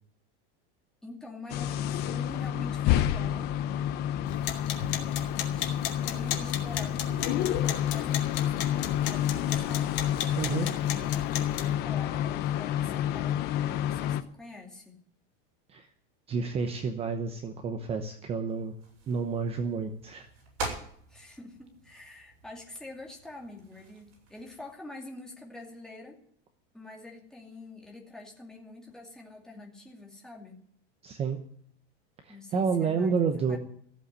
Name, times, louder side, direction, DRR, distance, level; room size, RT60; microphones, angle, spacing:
voice 1, 1.0-3.5 4.8-10.1 11.3-15.0 21.1-26.2 26.7-30.7 32.3-33.1 33.5-33.6, left 2 dB, ahead, -1 dB, 2.4 m, -46 dB
sound 1, 1.5-14.2, left 11 dB, 30° left, 0.8 m, -29 dB
oven turn on beep, 4.3-11.7, left 10 dB, 55° left, 2.4 m, -36 dB
voice 2, 10.4-10.7 15.7-15.9 16.3-18.7 19.1-20.3 31.0-31.4 32.2-33.6, right 5 dB, 20° right, 7 dB, 0.9 m, -30 dB
sound 2, 18.4-24.7, right 3 dB, 55° right, 6.9 m, -44 dB
15.0 x 7.9 x 9.7 m, 0.62 s
supercardioid pair, 170°, 30 cm